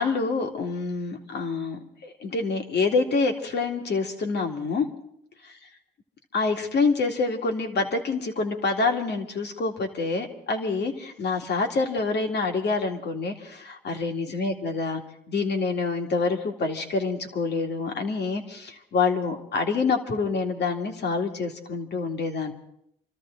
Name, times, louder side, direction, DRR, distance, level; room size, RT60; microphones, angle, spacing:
voice 1, 0.0-4.9 5.4-5.6 6.3-15.0 15.3-22.5, left 4 dB, 60° left, 4 dB, 2.3 m, -27 dB
26.5 x 13.5 x 3.8 m, 0.71 s
cardioid pair, 90°, 20 cm